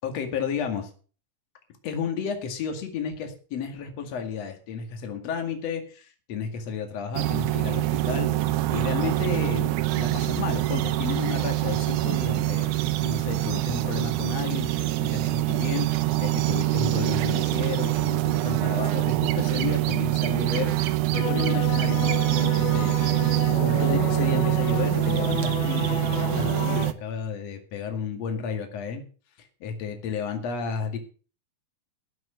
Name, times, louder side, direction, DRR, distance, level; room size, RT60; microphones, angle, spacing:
voice 1, 0.0-0.9 1.8-9.7 10.0-12.7 13.0-20.7 21.1-23.0 23.6-29.0 29.4-31.0, left 6 dB, 55° left, 5 dB, 3.1 m, -32 dB
sound 1, 7.1-26.9, right 17 dB, 80° right, 2.3 m, -25 dB
sound 2, 21.1-26.9, left 10 dB, 80° left, 1.1 m, -32 dB
19.0 x 6.4 x 6.3 m, 0.38 s
omnidirectional pair, 3.6 m